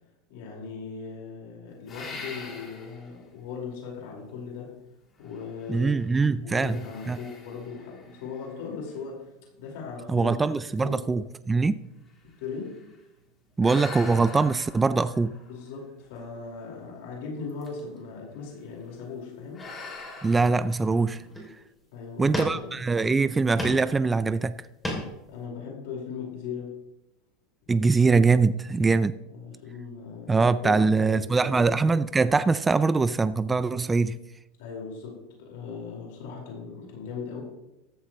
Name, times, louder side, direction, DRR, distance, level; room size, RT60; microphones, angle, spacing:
voice 1, 0.3-4.7 5.2-6.1 6.4-9.3 9.6-10.4 10.8-11.1 12.4-12.8 15.5-19.7 21.9-22.8 25.3-26.8 29.3-32.0 34.6-37.4, left 5 dB, 70° left, 4.9 m, -38 dB
sound 1, 1.9-3.2 3.8-3.9 5.2-6.1 6.6-9.0 9.7-9.8 10.3-10.4 10.7-13.0 13.6-16.3 17.5-18.0 18.3-18.6 19.5-21.4, left 3 dB, 20° left, 3.0 m, -44 dB
voice 2, 5.7-6.8 7.1-7.2 10.1-11.8 13.6-15.4 20.2-21.2 22.2-24.6 27.7-29.2 30.3-34.2, right 4 dB, 10° right, 0.3 m, -23 dB
sound 2, 18.9-19.1 19.6-20.3 20.8-20.9 21.2-21.7 22.3-23.0 23.3-23.9 24.3-25.3, equal, 5° left, 3.1 m, -34 dB
14.5 x 13.5 x 3.2 m
supercardioid pair, 165°, 0 cm